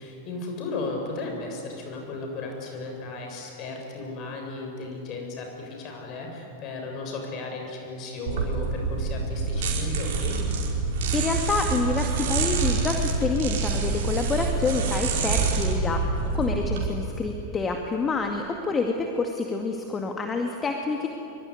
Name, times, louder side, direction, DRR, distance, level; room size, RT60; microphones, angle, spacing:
voice 1, 0.0-10.4, left 3 dB, 35° left, 2 dB, 7.4 m, -35 dB
sound 1, 8.3-16.8, right 4 dB, 50° right, 5.0 m, -26 dB
voice 2, 11.1-21.1, left 3 dB, 20° left, 3 dB, 2.1 m, -27 dB
24.5 x 24.0 x 9.8 m, 2.9 s
figure-of-eight pair, 90°, 0 cm